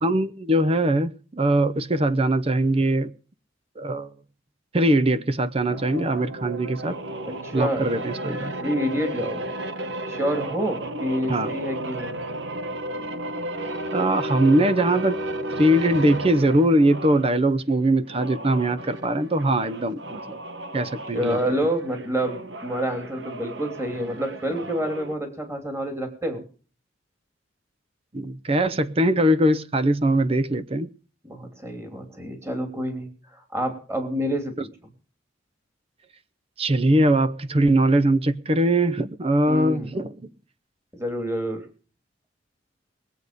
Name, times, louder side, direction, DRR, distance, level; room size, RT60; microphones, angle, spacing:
voice 1, 0.0-3.1 3.8-4.1 4.7-7.0 7.5-8.5 11.3-11.5 13.9-15.2 15.6-20.4 20.7-21.4 28.1-30.9 36.6-40.3, right 1 dB, 30° right, 0.7 m, -21 dB
sound 1, 5.7-17.3 18.0-25.1, right 1 dB, 65° right, 1.3 m, -33 dB
voice 2, 7.2-7.9 8.6-9.5 10.1-12.2 21.1-26.4 31.2-33.1 33.5-34.7 39.5-39.9 40.9-41.6, equal, 15° right, 3.0 m, -28 dB
22.0 x 8.2 x 5.1 m
head